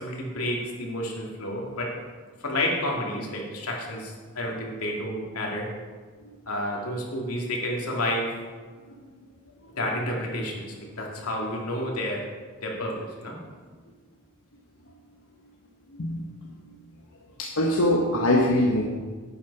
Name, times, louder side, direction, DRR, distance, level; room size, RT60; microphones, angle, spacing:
voice 1, 0.0-1.9 2.4-5.7 6.5-8.3 9.8-12.2 12.6-13.3, left 1 dB, 85° left, -1 dB, 2.6 m, -30 dB
voice 2, 17.4-18.8, left 1 dB, 65° left, -1 dB, 1.2 m, -22 dB
11.0 x 9.4 x 4.8 m, 1.5 s
head